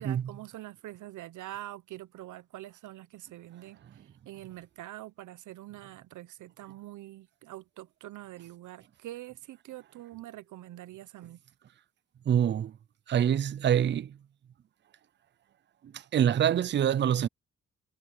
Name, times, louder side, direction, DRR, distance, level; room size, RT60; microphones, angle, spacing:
voice 1, 0.0-11.4, right 15 dB, 75° right, 0.9 m, -45 dB
voice 2, 12.3-12.8 13.1-14.2 15.8-17.3, right 9 dB, 35° right, 0.5 m, -25 dB
cardioid pair, 90°, 30 cm